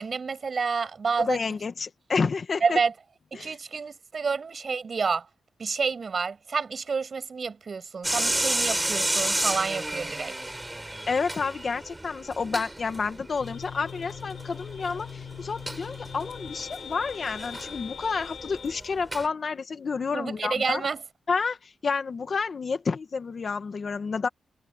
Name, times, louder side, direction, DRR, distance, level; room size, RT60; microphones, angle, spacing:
voice 1, 0.0-1.4 2.6-2.9 3.3-5.3 5.6-10.3 20.1-21.0, right 5 dB, 40° right, 7.0 m, -29 dB
voice 2, 1.2-2.8 3.3-3.5 11.1-20.9 21.3-24.3, left 5 dB, 40° left, 1.6 m, -30 dB
sound 1, 8.0-19.3, right 1 dB, 10° right, 7.2 m, -32 dB
sound 2, 13.4-18.8, left 8 dB, 85° left, 5.6 m, -41 dB
wide cardioid pair, 165°, 0 cm